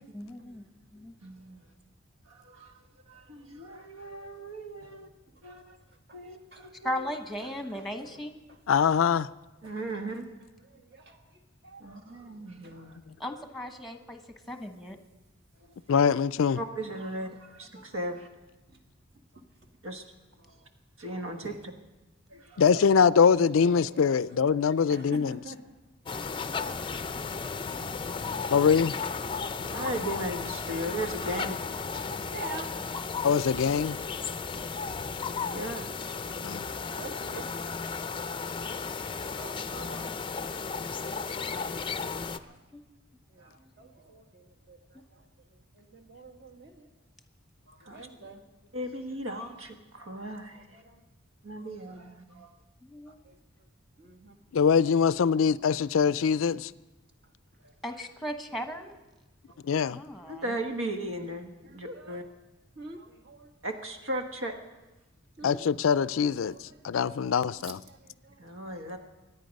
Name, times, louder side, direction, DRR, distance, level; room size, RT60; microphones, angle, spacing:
voice 1, 0.0-1.1 6.8-8.3 13.2-15.0 42.7-42.8 52.8-53.2 57.8-59.0 59.9-60.5, equal, ahead, 1.1 m, -37 dB
voice 2, 1.2-1.7 2.3-2.8 3.1-5.1 5.4-5.8 6.1-7.1 9.6-10.3 11.8-13.0 16.5-18.3 19.8-20.0 20.4-20.6 21.0-21.5 22.3-22.6 26.7-26.9 27.8-28.0 28.3-28.4 29.7-31.6 35.2-36.2 42.4-42.6 43.4-43.6 47.7-48.1 48.7-50.8 51.4-52.5 53.1-53.2 57.6-57.7 60.3-62.2 63.6-64.5 65.4-65.6 68.4-69.0, right 1 dB, 80° right, 1.4 m, -37 dB
voice 3, 5.9-6.2 6.5-6.7 7.4-7.9 8.5-8.6 9.6-10.2 10.6-12.4 12.6-12.8 17.8-18.0 18.7-18.8 19.4-19.7 21.4-21.5 22.6-23.0 23.5-24.2 24.5-25.6 26.6-26.9 27.6-28.4 29.2-29.3 32.2-32.8 35.2-35.5 36.9-37.7 39.3-40.1 41.2-41.6 43.3-46.9 47.9-48.4 50.6-51.0 51.9-52.0 52.4-52.5 53.2-53.4 54.0-54.4 55.9-56.0 57.2-57.3 57.8-58.1 59.4-59.5 59.8-59.9 61.6-62.2 62.8-63.5 65.4-65.6 66.5-69.0, right 3 dB, 55° right, 1.7 m, -48 dB
voice 4, 8.7-9.3 15.9-16.6 22.6-25.4 28.5-28.9 33.2-34.0 36.4-36.6 54.5-56.7 59.6-60.0 65.4-67.8, left 6 dB, 80° left, 0.4 m, -23 dB
sound 1, 26.1-42.4, left 5 dB, 25° left, 0.5 m, -34 dB
24.5 x 9.5 x 5.3 m
head